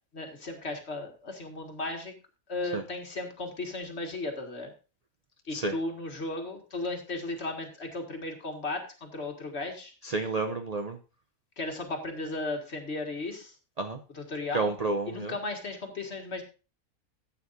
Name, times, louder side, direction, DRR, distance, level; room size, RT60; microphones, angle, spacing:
voice 1, 0.1-2.1 2.5-4.7 5.5-9.9 11.6-13.5 14.1-14.7 15.1-16.4, left 2 dB, 45° left, 3 dB, 2.1 m, -35 dB
voice 2, 10.0-11.0 13.8-14.0 14.5-15.3, right 3 dB, 40° right, 6 dB, 0.5 m, -30 dB
14.0 x 8.7 x 2.6 m, 0.32 s
omnidirectional pair, 1.6 m